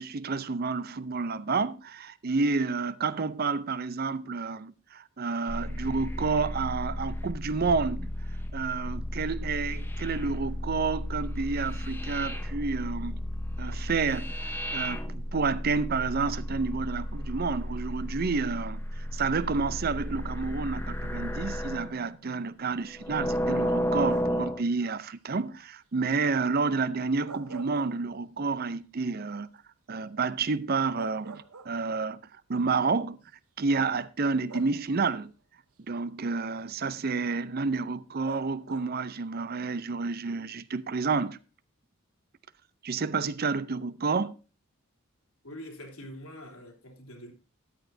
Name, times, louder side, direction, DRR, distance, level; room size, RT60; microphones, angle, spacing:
voice 1, 0.0-8.1 8.5-13.2 13.6-29.5 29.9-32.2 32.5-33.2 33.6-35.3 35.9-41.4 42.8-44.4, right 4 dB, 45° right, 0.5 m, -30 dB
sound 1, 5.5-22.0 22.9-24.6, equal, 10° left, 0.9 m, -33 dB
sound 2, 24.1-24.6 27.0-28.4 28.8-28.9 30.5-30.6 30.9-32.1 33.1-33.2 34.5-35.2 38.2-39.1, right 4 dB, 85° right, 1.1 m, -45 dB
voice 2, 45.4-47.3, equal, 85° left, 3.1 m, -44 dB
13.5 x 10.0 x 2.7 m
head